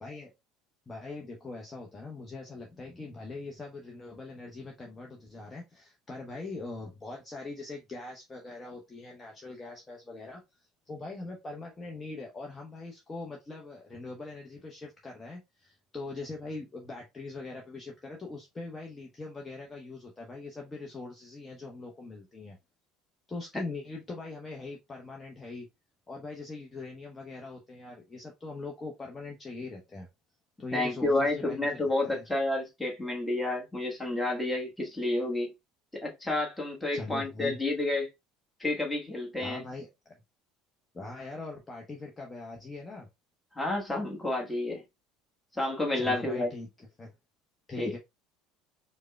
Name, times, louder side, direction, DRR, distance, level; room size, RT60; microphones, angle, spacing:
voice 1, 0.0-0.3 0.9-22.6 23.3-25.7 26.1-30.1 30.6-32.2 36.9-37.6 39.4-40.2 40.9-43.1 45.9-47.1 47.7-48.0, left 3 dB, 25° left, 0.8 m, -42 dB
voice 2, 30.7-35.5 35.9-38.1 38.6-39.6 43.5-44.8 45.5-46.5 47.8-47.9, left 2 dB, 5° left, 1.3 m, -30 dB
4.8 x 2.2 x 2.2 m
figure-of-eight pair, 65°, 0 cm